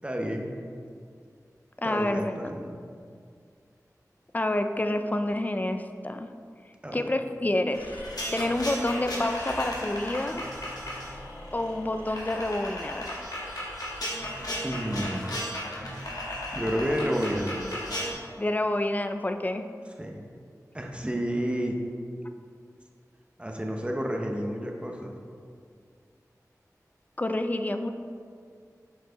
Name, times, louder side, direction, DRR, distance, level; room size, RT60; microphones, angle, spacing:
voice 1, 0.0-0.5 1.8-2.7 6.8-7.0 14.6-15.3 16.5-17.5 20.0-20.2 20.7-21.8 23.4-25.1, equal, 15° right, 2 dB, 0.8 m, -30 dB
voice 2, 1.8-2.5 4.3-6.3 6.9-8.0 8.3-10.4 11.5-13.1 18.4-19.6 27.2-27.9, left 1 dB, 25° left, 7 dB, 0.4 m, -28 dB
sound 1, 7.7-18.1, left 1 dB, 85° left, 1.4 m, -35 dB
7.9 x 4.5 x 3.9 m, 2.2 s
wide cardioid pair, 55°, 6 cm